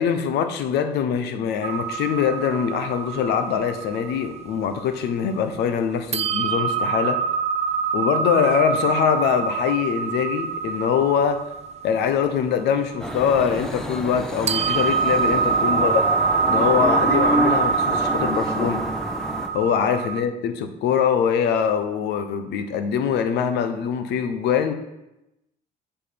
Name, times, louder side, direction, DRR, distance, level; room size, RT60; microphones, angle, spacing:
voice 1, 0.0-7.2 7.9-11.4 11.8-16.1 16.5-18.8 19.5-24.7, left 7 dB, 80° left, 9 dB, 0.9 m, -23 dB
sound 1, 1.6-5.7 6.1-14.2 14.5-20.2, right 6 dB, 40° right, 0.5 m, -25 dB
sound 2, 13.0-19.5, equal, 5° left, 1.1 m, -27 dB
8.7 x 5.0 x 5.2 m, 0.92 s
cardioid pair, 110°, 17 cm